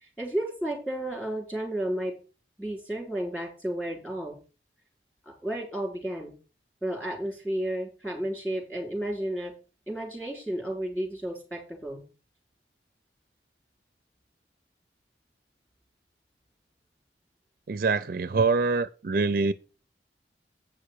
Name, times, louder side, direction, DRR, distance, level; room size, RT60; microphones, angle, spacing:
voice 1, 0.0-2.1 2.6-4.4 5.4-6.3 6.8-9.5 9.9-12.0, right 1 dB, 10° left, 4.2 m, -32 dB
voice 2, 17.7-19.5, right 4 dB, 50° right, 0.4 m, -25 dB
8.7 x 5.7 x 6.6 m
head